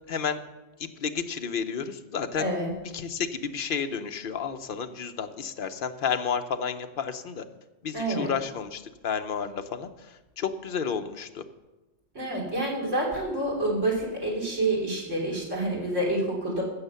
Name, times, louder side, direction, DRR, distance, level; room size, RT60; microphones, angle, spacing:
voice 1, 0.1-0.4 0.8-2.5 2.9-7.5 7.8-11.4, left 6 dB, 50° left, 7 dB, 0.9 m, -31 dB
voice 2, 2.4-2.7 7.9-8.3 12.2-16.6, right 1 dB, 85° right, 0 dB, 3.6 m, -28 dB
15.5 x 6.4 x 6.8 m, 1.1 s
omnidirectional pair, 1.2 m